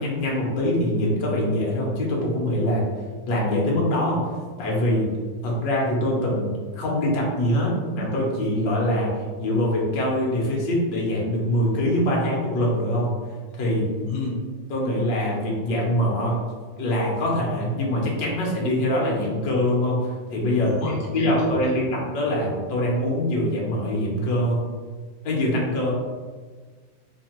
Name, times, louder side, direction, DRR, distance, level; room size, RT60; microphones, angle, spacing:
voice 1, 0.0-2.8 3.3-4.3 4.6-5.1 5.4-9.1 9.4-13.1 13.6-13.9 14.7-16.4 16.8-20.8 21.1-24.6 25.2-25.9, left 1 dB, 65° left, -3 dB, 1.4 m, -23 dB
voice 2, 14.0-14.4 20.6-21.7, left 3 dB, 85° left, -1 dB, 1.5 m, -31 dB
4.0 x 2.8 x 2.9 m, 1.4 s
omnidirectional pair, 2.3 m